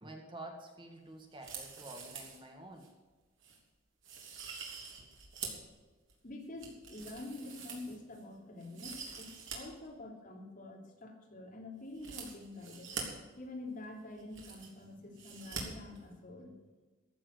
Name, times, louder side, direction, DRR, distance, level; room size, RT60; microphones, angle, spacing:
voice 1, 0.0-2.9, right 1 dB, 25° right, 3 dB, 1.8 m, -49 dB
sound 1, 1.3-2.4 2.8-2.9 3.4-3.6 4.0-5.7 6.1-8.2 8.6-9.6 9.8-9.9 11.9-13.0 13.8-13.9 14.1-14.8 15.2-15.6 15.9-16.0, right 6 dB, 70° right, 3.6 m, -45 dB
voice 2, 6.2-12.9 13.3-16.5, left 2 dB, 45° left, 1 dB, 3.1 m, -47 dB
14.5 x 7.7 x 8.1 m, 1.3 s
head